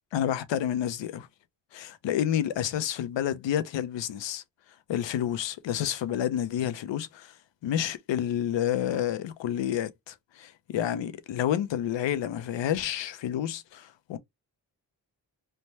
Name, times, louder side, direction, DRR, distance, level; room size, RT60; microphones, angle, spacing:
voice 1, 0.1-1.3 1.7-4.4 4.9-7.3 7.6-14.2, left 10 dB, 85° left, 0.6 m, -29 dB
3.3 x 2.1 x 2.7 m
cardioid pair, 95°, 43 cm